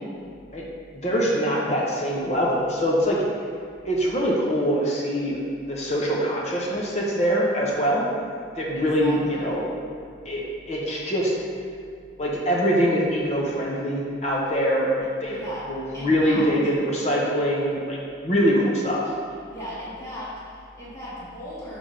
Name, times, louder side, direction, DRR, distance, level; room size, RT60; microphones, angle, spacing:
voice 1, 0.9-3.2 3.8-5.4 5.7-8.1 8.6-9.7 10.2-11.3 12.2-18.0 18.2-19.1, equal, 35° left, -4 dB, 0.9 m, -23 dB
voice 2, 8.7-9.6 15.3-16.5 19.5-21.8, equal, 15° left, -9 dB, 1.3 m, -37 dB
5.9 x 3.5 x 5.1 m, 2.3 s
head